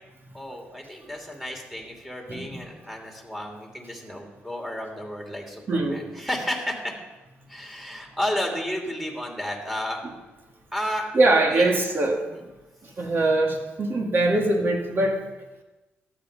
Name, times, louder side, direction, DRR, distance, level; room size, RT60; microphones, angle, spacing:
voice 1, 0.3-6.9 7.5-10.0 10.7-11.7 12.3-12.4, left 1 dB, 5° right, 0 dB, 2.9 m, -32 dB
voice 2, 2.3-2.6 5.7-6.0 11.1-12.2 12.8-15.2, right 2 dB, 50° right, 1 dB, 2.3 m, -22 dB
12.5 x 8.1 x 5.1 m, 1.1 s
cardioid pair, 65°, 5 cm